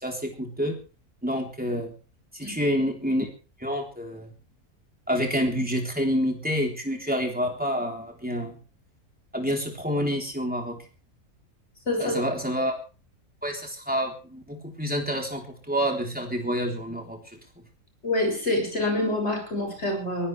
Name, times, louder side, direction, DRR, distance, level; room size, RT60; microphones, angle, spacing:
voice 1, 0.0-0.8 1.2-1.9 2.3-3.3 3.6-4.3 5.1-8.6 9.3-10.8 12.0-12.7 13.4-17.2, equal, 5° right, 1 dB, 3.8 m, -28 dB
voice 2, 11.9-12.2 18.0-20.3, left 1 dB, 45° left, 2 dB, 7.6 m, -26 dB
22.5 x 17.0 x 3.4 m, 0.37 s
omnidirectional pair, 1.5 m